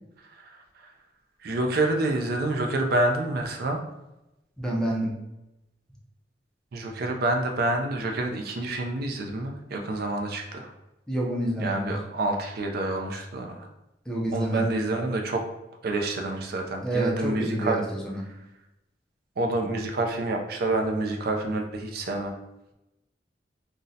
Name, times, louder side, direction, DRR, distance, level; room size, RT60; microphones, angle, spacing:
voice 1, 0.4-0.9 1.4-3.8 6.7-10.7 11.6-13.7 14.3-15.4 15.8-17.8 19.4-22.3, right 2 dB, 55° right, 3 dB, 0.4 m, -28 dB
voice 2, 4.6-5.1 11.1-11.9 14.1-14.6 16.8-18.2, right 1 dB, 5° left, -2 dB, 0.5 m, -28 dB
2.6 x 2.1 x 3.8 m, 0.93 s
head